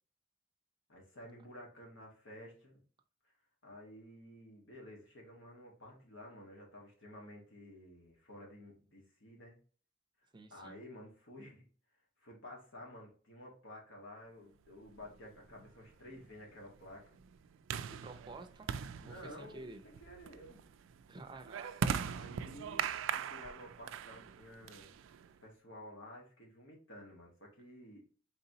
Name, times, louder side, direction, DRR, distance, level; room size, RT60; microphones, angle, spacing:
voice 1, 0.9-2.8 3.6-9.6 10.5-11.6 12.2-17.2 19.0-20.7 22.0-22.9 23.2-25.0 25.4-28.0, left 1 dB, 70° left, -1 dB, 1.5 m, -52 dB
voice 2, 10.3-10.9 18.0-18.7 19.0-19.8 21.1-22.0, right 2 dB, 25° right, 5 dB, 0.5 m, -50 dB
sound 1, 15.0-25.4, right 7 dB, 70° right, 0.3 m, -41 dB
4.0 x 3.4 x 2.8 m, 0.42 s
head